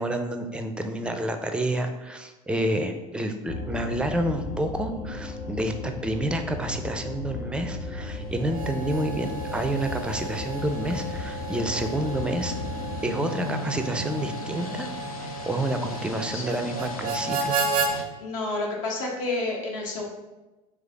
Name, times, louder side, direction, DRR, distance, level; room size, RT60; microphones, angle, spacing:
voice 1, 0.0-12.5 13.0-14.9 15.2-17.6, right 1 dB, 5° right, 6 dB, 0.4 m, -29 dB
sound 1, 3.5-12.9, left 2 dB, 45° left, 0.7 m, -36 dB
sound 2, 8.1-18.0, left 1 dB, 85° left, 0.5 m, -38 dB
Harmonica, 8.4-17.9, right 3 dB, 75° right, 0.5 m, -33 dB
voice 2, 18.2-20.0, left 2 dB, 70° left, -1 dB, 1.0 m, -30 dB
3.7 x 3.2 x 3.5 m, 1.1 s
hypercardioid pair, 75°, 18 cm